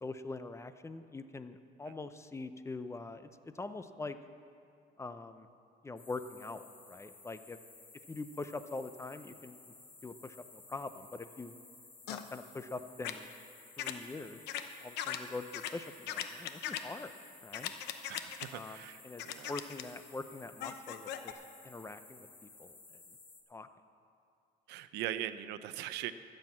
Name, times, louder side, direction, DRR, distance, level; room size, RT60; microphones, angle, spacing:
voice 1, 0.0-4.2 5.0-5.5 5.8-7.6 8.1-9.6 10.0-11.5 12.1-13.3 13.8-14.4 14.8-17.1 17.4-17.7 18.5-19.2 19.5-22.8 23.5-23.7, left 3 dB, 15° left, 11 dB, 0.6 m, -43 dB
sound 1, 6.0-23.4, left 3 dB, 30° left, 2.2 m, -56 dB
sound 2, 12.1-12.2 13.0-13.1 13.8-13.9 14.5-14.6 15.0-15.2 15.5-15.7 16.1-16.8 17.5-18.5 19.2-19.8 20.6-21.3, left 11 dB, 80° left, 0.8 m, -38 dB
voice 2, 18.1-19.5 24.7-26.1, right 12 dB, 90° right, 13 dB, 0.6 m, -40 dB
13.5 x 7.8 x 7.4 m, 2.4 s
cardioid pair, 110°, 17 cm